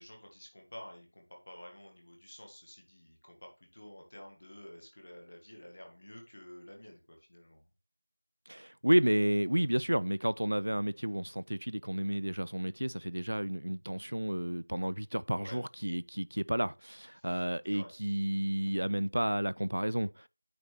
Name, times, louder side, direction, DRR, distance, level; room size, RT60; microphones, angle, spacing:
voice 1, 0.0-7.7 15.4-15.6 17.2-17.4 17.7-17.9, left 1 dB, 30° left, 1.6 m, -51 dB
voice 2, 8.5-20.3, right 1 dB, 65° right, 0.3 m, -31 dB
sound 1, 10.6-12.8, right 1 dB, 25° right, 1.3 m, -65 dB
9.2 x 5.0 x 3.4 m
figure-of-eight pair, 180°, 0 cm